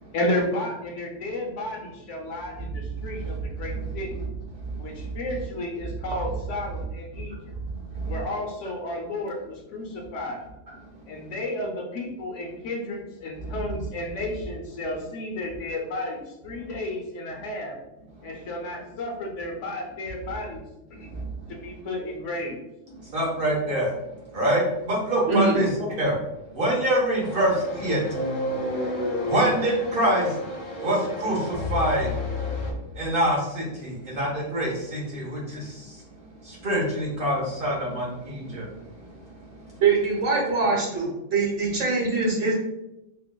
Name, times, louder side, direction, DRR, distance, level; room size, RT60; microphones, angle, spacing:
voice 1, 0.1-4.2 4.8-7.5 8.1-10.4 11.1-17.8 18.2-20.6 21.0-21.1 21.5-22.6, left 1 dB, 75° left, 1 dB, 1.1 m, -32 dB
voice 2, 23.1-23.9 24.3-25.7 26.0-26.1 26.6-28.0 29.3-30.3 30.8-31.4 31.7-32.1 33.0-35.6 36.6-38.6, right 1 dB, 50° right, -3 dB, 1.1 m, -24 dB
sound 1, 27.2-32.7, left 1 dB, 50° left, 0.9 m, -31 dB
voice 3, 39.8-42.5, right 4 dB, 80° right, -3 dB, 1.4 m, -23 dB
4.4 x 2.4 x 2.2 m, 0.92 s
omnidirectional pair, 1.3 m